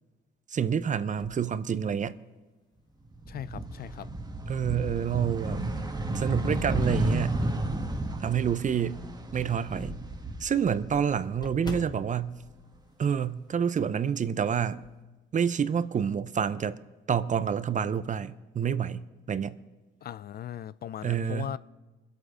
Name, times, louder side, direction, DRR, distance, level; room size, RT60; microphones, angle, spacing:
voice 1, 0.5-2.1 4.5-5.6 6.1-7.4 8.2-9.0 9.3-10.0 10.4-12.3 13.0-14.8 15.3-16.8 17.1-19.0 19.3-19.5 21.0-21.5, right 8 dB, 40° right, 0.6 m, -28 dB
sound 1, 1.1-2.4 3.0-3.1 4.5-5.1 5.5-8.2 8.6-8.7 9.1-9.2 9.5-9.6 9.8-13.6 13.9-14.1 14.4-15.0, left 2 dB, 20° left, 1.5 m, -47 dB
sound 2, 3.1-11.3 11.6-12.8, right 2 dB, 20° right, 1.3 m, -32 dB
voice 2, 3.3-4.1 20.0-21.6, left 10 dB, 50° left, 0.4 m, -38 dB
22.0 x 8.1 x 5.0 m
cardioid pair, 90°, 20 cm